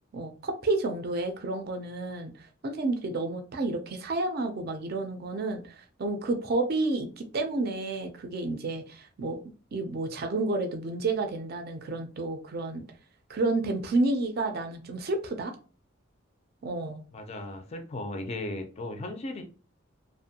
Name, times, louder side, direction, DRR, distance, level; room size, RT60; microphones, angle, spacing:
voice 1, 0.1-9.4 9.7-12.8 13.3-15.5 16.6-17.0, right 2 dB, 50° right, 5 dB, 0.4 m, -30 dB
voice 2, 17.1-19.4, left 2 dB, 30° left, 6 dB, 0.4 m, -36 dB
2.5 x 2.1 x 2.7 m, 0.36 s
head